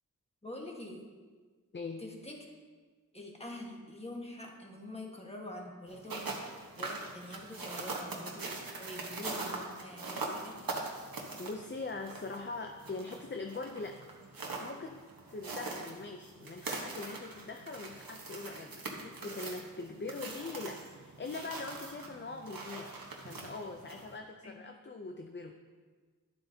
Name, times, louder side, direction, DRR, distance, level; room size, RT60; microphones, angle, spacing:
voice 1, 0.4-1.1 2.0-2.4 3.1-6.2 6.8-10.6 24.4-24.6, left 1 dB, 15° left, -1 dB, 1.5 m, -45 dB
voice 2, 1.7-2.0 11.4-14.0 14.6-23.0 23.2-25.5, left 3 dB, 30° left, 4 dB, 0.5 m, -42 dB
sound 1, 5.9-24.2, right 3 dB, 75° right, 1.2 m, -42 dB
11.0 x 7.7 x 2.8 m, 1.5 s
wide cardioid pair, 65°, 35 cm